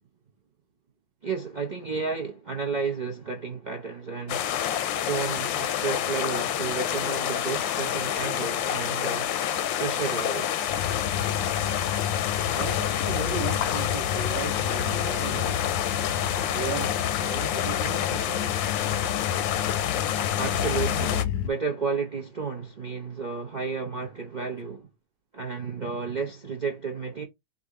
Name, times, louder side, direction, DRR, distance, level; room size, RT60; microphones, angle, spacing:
voice 1, 1.2-9.3 9.8-10.7 20.2-24.9 25.3-27.2, right 5 dB, 70° right, 0.4 m, -32 dB
sound 1, 4.3-21.2, left 10 dB, 90° left, 1.3 m, -28 dB
sound 2, 10.7-21.5, left 9 dB, 70° left, 1.0 m, -31 dB
voice 2, 12.5-15.7 16.5-18.7, right 7 dB, 85° right, 1.3 m, -36 dB
4.9 x 2.7 x 3.6 m
omnidirectional pair, 2.0 m